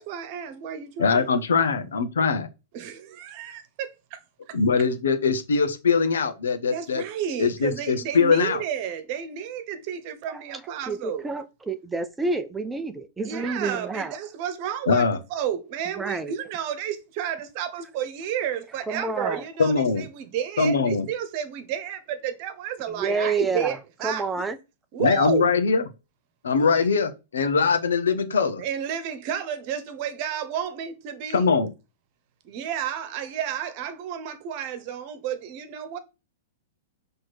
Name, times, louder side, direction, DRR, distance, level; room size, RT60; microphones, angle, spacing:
voice 1, 0.0-1.4 2.7-4.2 4.5-4.6 6.7-11.3 13.2-24.3 24.9-25.5 28.6-31.5 32.4-36.0, right 9 dB, 45° right, 1.2 m, -31 dB
voice 2, 1.0-2.5 4.5-7.0 7.4-8.6 14.9-15.2 19.6-20.1 20.6-21.1 25.0-25.8 26.4-28.6 31.3-31.7, left 5 dB, 70° left, 1.2 m, -22 dB
voice 3, 10.9-14.1 16.0-16.3 18.9-19.4 23.0-23.8 24.0-24.6, right 3 dB, 10° right, 0.7 m, -28 dB
6.3 x 3.5 x 6.0 m
figure-of-eight pair, 105°, 0 cm